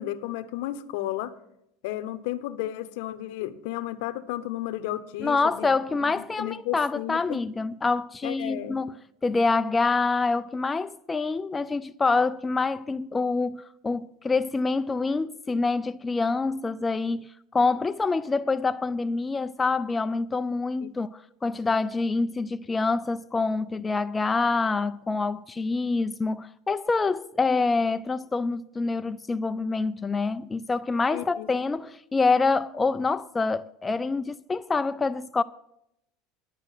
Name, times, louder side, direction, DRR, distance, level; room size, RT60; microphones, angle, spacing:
voice 1, 0.0-1.3 1.8-7.4 8.2-8.8 20.8-20.9 31.1-31.5, left 14 dB, 75° left, 0.9 m, -33 dB
voice 2, 5.2-8.9 9.2-17.3 17.5-21.1 21.4-35.4, left 3 dB, 15° left, 0.4 m, -26 dB
11.0 x 9.1 x 6.4 m
supercardioid pair, 105°, 0 cm